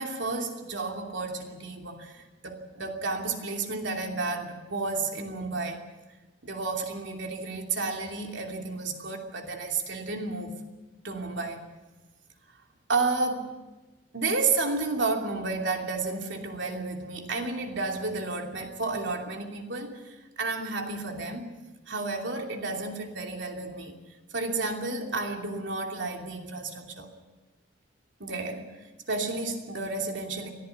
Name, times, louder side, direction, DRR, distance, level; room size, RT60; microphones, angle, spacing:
voice 1, 0.0-5.8 6.4-10.5 11.0-11.6 12.9-13.5 14.1-21.5 21.9-24.0 24.3-27.1 28.2-28.7 29.1-30.5, right 3 dB, 80° right, 2 dB, 2.9 m, -31 dB
22.5 x 14.5 x 8.3 m, 1.1 s
head